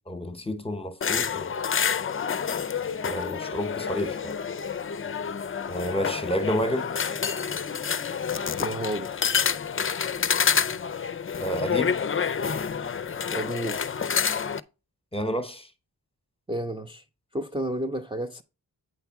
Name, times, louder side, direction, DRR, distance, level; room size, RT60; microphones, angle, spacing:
voice 1, 0.1-1.5 3.0-4.4 5.7-6.9 11.4-12.0 15.1-15.7, equal, 15° left, 1.0 m, -30 dB
sound 1, 1.0-14.6, left 6 dB, 35° left, 0.4 m, -28 dB
voice 2, 8.6-9.1 13.3-13.8 16.5-17.0 17.3-18.4, right 1 dB, 15° right, 0.6 m, -31 dB
8.8 x 3.5 x 5.8 m
wide cardioid pair, 100°, 39 cm